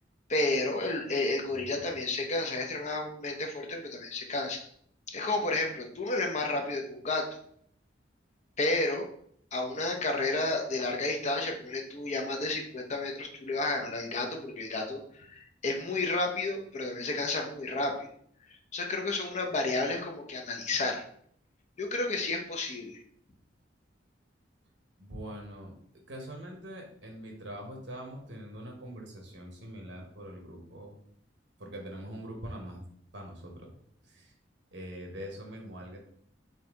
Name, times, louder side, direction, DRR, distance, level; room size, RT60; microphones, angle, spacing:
voice 1, 0.3-4.7 5.1-7.3 8.6-9.1 9.5-18.1 18.7-21.0 21.8-23.0, left 2 dB, 40° left, 2 dB, 0.7 m, -31 dB
voice 2, 1.5-2.0 25.0-25.7 26.1-31.0 31.6-32.8 33.1-33.7 34.0-34.3 34.7-36.0, equal, 70° right, 1 dB, 1.2 m, -43 dB
4.4 x 3.3 x 3.7 m, 0.64 s
head